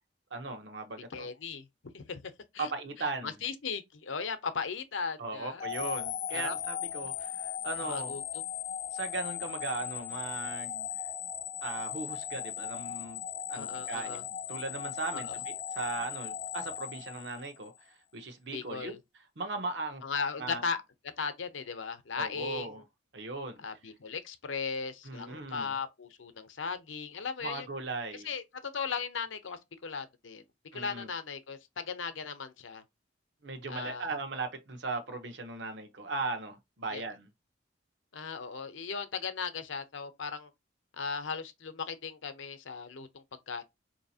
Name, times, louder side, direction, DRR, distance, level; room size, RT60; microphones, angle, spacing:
voice 1, 0.3-1.3 2.6-3.4 5.2-8.1 8.9-10.9 11.6-13.2 13.5-18.9 19.4-20.0 20.4-20.6 22.2-22.8 23.1-23.6 25.0-25.7 27.4-28.3 30.7-31.1 33.4-37.3, right 3 dB, 65° right, 0.8 m, -38 dB
voice 2, 1.1-1.7 1.9-2.7 3.0-5.6 6.3-6.6 7.8-8.2 13.5-14.2 15.1-15.4 18.5-19.0 20.0-20.8 21.2-22.8 23.6-27.7 28.1-30.4 30.7-32.8 33.7-34.1 36.9-37.0 38.1-40.5 40.9-43.6, left 5 dB, 85° left, 0.7 m, -37 dB
sound 1, 5.6-17.8, left 9 dB, 40° left, 0.4 m, -38 dB
4.7 x 2.8 x 2.7 m
head